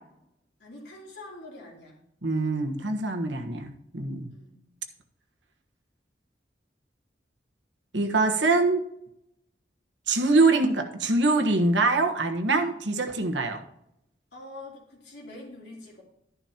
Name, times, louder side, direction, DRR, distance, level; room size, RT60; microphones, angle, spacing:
voice 1, 0.6-2.0 4.3-4.6 14.3-16.0, left 2 dB, 70° left, -3 dB, 3.2 m, -44 dB
voice 2, 2.2-4.3 7.9-8.8 10.1-13.6, right 3 dB, 85° right, 4 dB, 1.3 m, -24 dB
11.5 x 11.0 x 2.9 m, 0.78 s
head